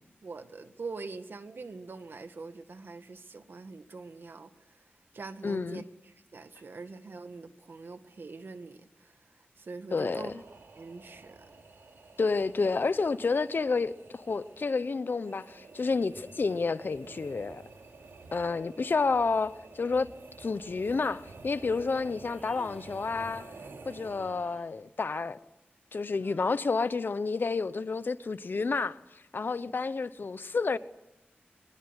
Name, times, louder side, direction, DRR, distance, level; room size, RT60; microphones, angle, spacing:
voice 1, 0.2-4.5 5.1-9.2 9.6-10.3 10.8-11.5, right 4 dB, 65° right, 1.9 m, -43 dB
voice 2, 5.4-5.8 9.9-10.4 12.2-17.6 18.3-20.1 20.4-23.5 23.9-25.4 25.9-29.0 29.3-30.8, left 4 dB, 60° left, 1.0 m, -30 dB
sound 1, 10.1-24.7, right 3 dB, 85° right, 3.3 m, -50 dB
Human voice, 22.2-23.2 24.0-24.7 26.2-26.9, equal, 10° left, 3.9 m, -54 dB
23.5 x 21.5 x 10.0 m
wide cardioid pair, 110°, 4 cm